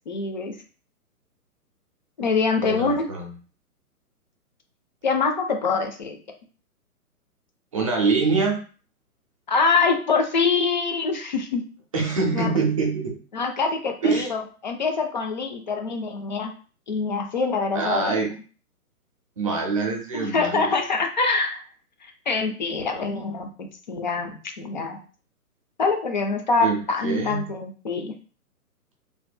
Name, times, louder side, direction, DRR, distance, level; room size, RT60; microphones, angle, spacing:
voice 1, 0.1-0.5 2.2-3.1 5.0-6.2 9.5-11.6 12.3-12.5 13.3-16.5 16.9-18.1 20.1-21.6 22.0-24.3 24.6-25.0 25.8-28.2, left 4 dB, 30° left, 4 dB, 0.5 m, -24 dB
voice 2, 2.6-3.3 7.7-8.6 11.9-13.1 14.0-14.3 17.7-18.3 19.4-20.8 26.6-27.4, right 4 dB, 25° right, 1 dB, 0.5 m, -24 dB
4.1 x 2.8 x 2.3 m, 0.39 s
figure-of-eight pair, 125°, 46 cm